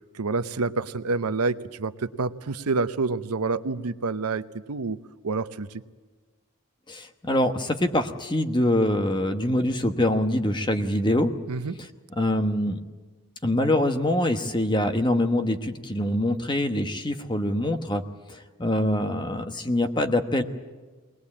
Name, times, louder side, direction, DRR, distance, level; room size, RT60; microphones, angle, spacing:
voice 1, 0.1-5.0 5.2-5.8 11.5-11.7, right 3 dB, 85° right, 12 dB, 0.8 m, -28 dB
voice 2, 6.9-11.3 12.2-12.8 13.4-18.0 18.3-20.4, left 1 dB, 20° left, 7 dB, 1.1 m, -24 dB
22.0 x 19.5 x 8.6 m, 1.3 s
head